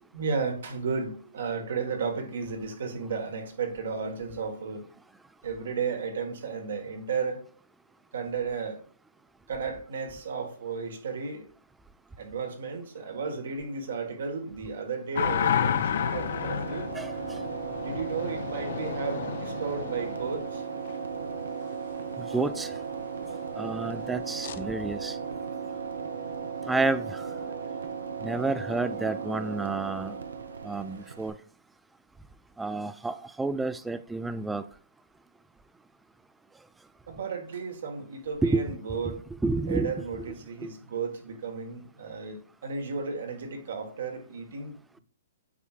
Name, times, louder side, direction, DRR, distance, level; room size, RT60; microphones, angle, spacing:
voice 1, 0.1-4.8 5.4-7.4 8.1-8.8 9.5-11.4 12.2-16.9 17.8-20.6 37.1-39.2 39.7-45.0, right 5 dB, 70° right, 1.6 m, -33 dB
sound 1, 15.2-21.0 24.4-24.6, left 8 dB, 60° left, 0.5 m, -31 dB
sound 2, 15.3-31.3, right 6 dB, 90° right, 0.8 m, -36 dB
voice 2, 22.3-22.7 23.6-25.1 26.7-27.0 28.2-30.1 30.7-31.3 32.6-34.6 38.4-38.6 39.0-39.2 39.4-39.9, right 3 dB, 5° right, 0.3 m, -29 dB
8.3 x 4.7 x 2.5 m
hypercardioid pair, 150°, 0 cm